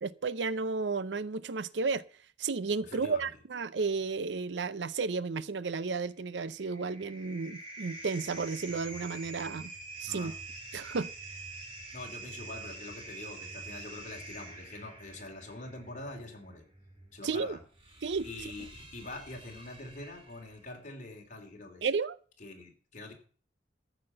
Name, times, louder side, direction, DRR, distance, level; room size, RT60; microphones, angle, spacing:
voice 1, 0.0-2.0 2.4-9.7 10.0-10.3 10.7-11.1 17.2-17.6 18.0-18.5 21.8-22.2, right 4 dB, 90° right, 0.6 m, -33 dB
voice 2, 2.8-3.3 10.0-10.3 11.9-16.6 17.1-17.6 18.2-21.9 22.4-23.1, left 2 dB, 45° left, 2.9 m, -44 dB
sound 1, 6.1-20.7, right 3 dB, 30° right, 4.0 m, -47 dB
14.0 x 5.9 x 7.8 m
head